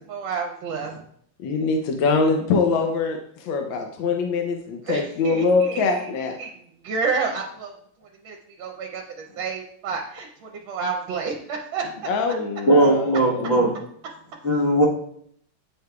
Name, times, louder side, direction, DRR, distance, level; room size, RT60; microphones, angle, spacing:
voice 1, 0.1-0.9 4.8-6.1 6.4-6.5 6.8-7.7 8.2-11.8, right 5 dB, 75° right, 1 dB, 1.4 m, -30 dB
voice 2, 1.4-6.3 12.0-13.7, left 4 dB, 75° left, 3 dB, 1.4 m, -23 dB
voice 3, 12.7-13.7 14.4-14.9, right 1 dB, 35° left, -3 dB, 1.5 m, -18 dB
9.2 x 4.8 x 2.3 m, 0.67 s
omnidirectional pair, 2.2 m